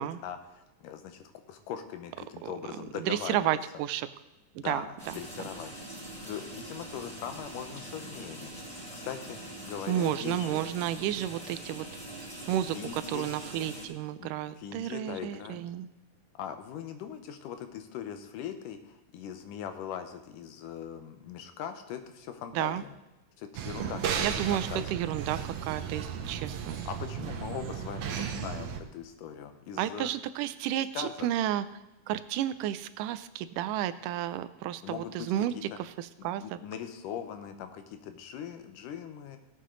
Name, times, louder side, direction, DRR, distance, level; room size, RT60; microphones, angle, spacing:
voice 1, 0.0-3.6 4.6-5.7 6.0-10.6 12.6-13.3 14.2-14.3 14.6-15.6 16.3-22.9 23.4-24.9 26.9-30.1 30.9-31.3 34.8-35.3 36.4-39.4, left 8 dB, 85° left, 8 dB, 2.6 m, -40 dB
voice 2, 3.0-4.1 4.6-5.1 9.9-11.9 12.5-15.9 22.5-22.8 24.2-26.8 29.8-31.7 32.1-35.5 35.8-36.6, right 12 dB, 85° right, 13 dB, 2.2 m, -32 dB
sound 1, 5.0-13.9, right 1 dB, 15° left, 4.2 m, -43 dB
sound 2, 23.5-28.8, right 8 dB, 70° right, 2.0 m, -35 dB
17.0 x 8.3 x 3.9 m, 0.98 s
omnidirectional pair, 3.7 m